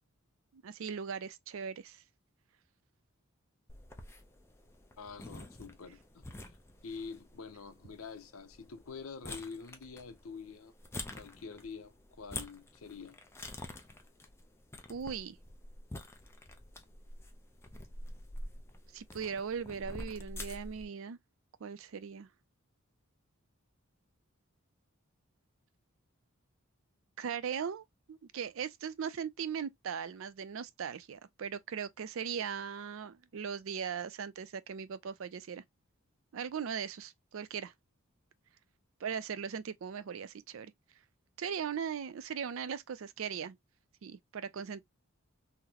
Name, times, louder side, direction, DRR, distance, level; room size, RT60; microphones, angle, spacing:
voice 1, 0.6-2.0 14.9-15.4 18.9-21.2 21.6-22.3 27.2-35.6 36.3-37.7 39.0-40.7 41.4-43.6 44.0-44.8, right 7 dB, 65° right, 0.4 m, -39 dB
sound 1, 3.7-20.9, left 2 dB, 10° left, 0.5 m, -48 dB
voice 2, 5.0-6.6 6.8-10.7 11.2-13.2, left 5 dB, 75° left, 0.6 m, -46 dB
3.8 x 2.1 x 2.8 m
head